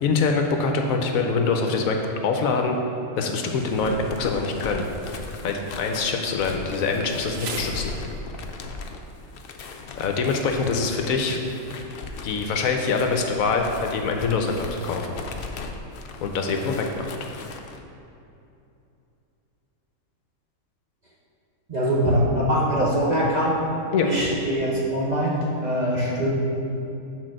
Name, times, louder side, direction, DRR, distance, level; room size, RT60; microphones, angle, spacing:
voice 1, 0.0-2.0 2.2-2.8 3.2-4.9 5.4-7.9 10.0-11.4 12.2-15.1 16.2-17.0 23.9-24.1, left 4 dB, 70° left, 3 dB, 1.0 m, -24 dB
Insect, 3.5-8.5, right 4 dB, 70° right, 1.2 m, -43 dB
sound 1, 3.6-17.8, left 4 dB, 90° left, 0.5 m, -38 dB
voice 2, 21.7-23.6 24.0-26.3, equal, 35° right, -5 dB, 0.9 m, -23 dB
6.3 x 4.0 x 6.2 m, 2.7 s
omnidirectional pair, 1.6 m